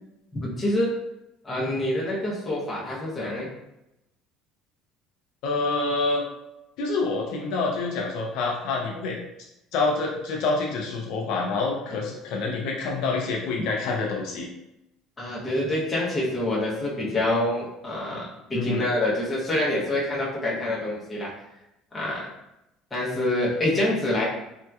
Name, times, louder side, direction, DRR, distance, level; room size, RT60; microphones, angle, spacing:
voice 1, 0.4-0.9 1.4-3.5 11.9-12.0 15.2-21.3 21.9-22.3 22.9-24.3, left 1 dB, 10° left, -7 dB, 0.8 m, -26 dB
voice 2, 5.4-6.2 6.8-9.2 9.7-14.5 18.5-18.9, left 3 dB, 55° left, -1 dB, 0.5 m, -27 dB
3.5 x 2.8 x 2.3 m, 0.89 s
cardioid pair, 180°, 0 cm